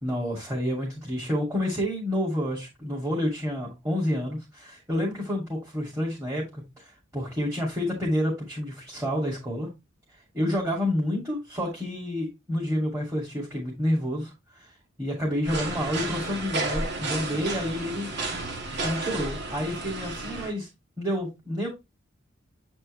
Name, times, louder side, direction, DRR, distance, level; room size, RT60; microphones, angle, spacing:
voice 1, 0.0-9.7 10.3-14.6 15.0-18.1 18.8-20.7 21.0-21.7, equal, 15° right, 2.5 m, -29 dB
sound 1, 15.4-20.5, right 2 dB, 60° right, 1.8 m, -32 dB
8.0 x 4.4 x 3.2 m
head